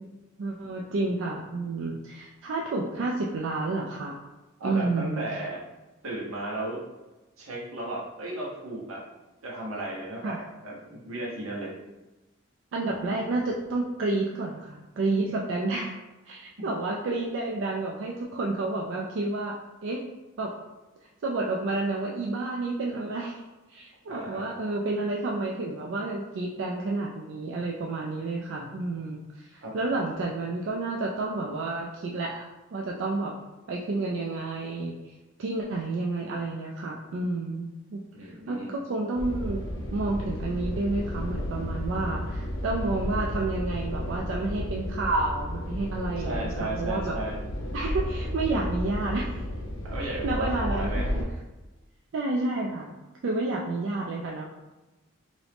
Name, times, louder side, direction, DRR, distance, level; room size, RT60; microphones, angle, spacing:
voice 1, 0.0-4.2 4.6-5.3 10.2-10.4 12.7-16.0 16.3-20.0 20.4-20.5 21.2-23.4 23.7-32.4 32.7-33.3 33.7-34.9 35.4-39.6 39.9-47.1 47.7-49.4 50.0-51.2 52.1-52.9 53.2-54.4, right 2 dB, 65° right, -1 dB, 0.3 m, -30 dB
voice 2, 4.6-5.6 6.0-6.8 7.4-9.0 9.4-11.7 24.1-24.5 29.6-29.7 38.1-38.7 46.2-47.4 49.9-51.3, right 1 dB, 85° right, -3 dB, 0.9 m, -35 dB
sound 1, 39.1-51.2, equal, 70° left, 0.6 m, -32 dB
2.9 x 2.6 x 3.3 m, 1.1 s
head